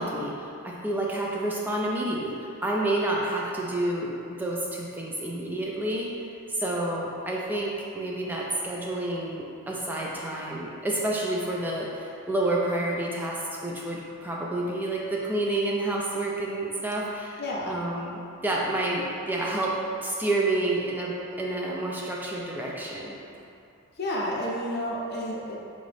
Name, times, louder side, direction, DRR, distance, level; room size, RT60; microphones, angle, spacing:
voice 1, 0.0-6.1 6.6-17.4 17.7-23.2, right 1 dB, 10° right, -4 dB, 0.3 m, -29 dB
voice 2, 17.4-17.8 24.0-25.6, equal, 50° left, -4 dB, 0.5 m, -30 dB
3.8 x 2.6 x 3.3 m, 2.6 s
head